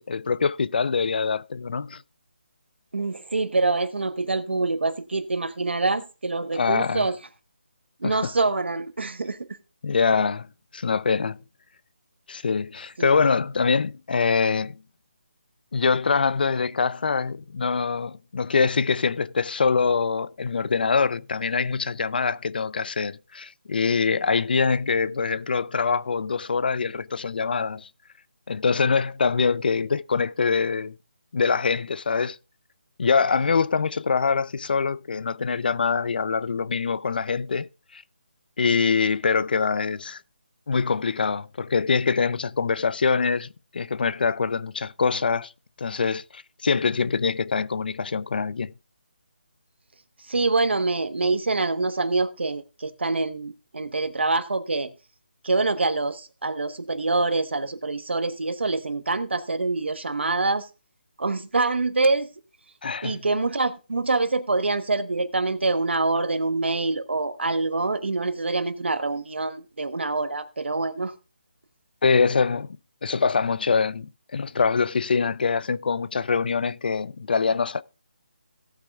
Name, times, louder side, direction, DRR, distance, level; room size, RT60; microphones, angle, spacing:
voice 1, 0.0-2.0 6.5-7.1 8.0-8.3 9.8-10.5 10.7-11.4 12.3-14.8 15.7-27.9 28.5-31.0 31.3-32.4 33.0-38.0 38.6-40.2 40.7-45.5 45.8-48.7 62.8-63.2 72.0-72.7 73.0-77.8, left 5 dB, 55° left, 0.5 m, -24 dB
voice 2, 2.9-7.1 8.0-9.4 13.0-13.1 50.3-54.9 55.4-60.7 61.2-62.3 63.0-71.1, right 3 dB, 80° right, 1.3 m, -25 dB
17.5 x 8.1 x 2.4 m
figure-of-eight pair, 165°, 6 cm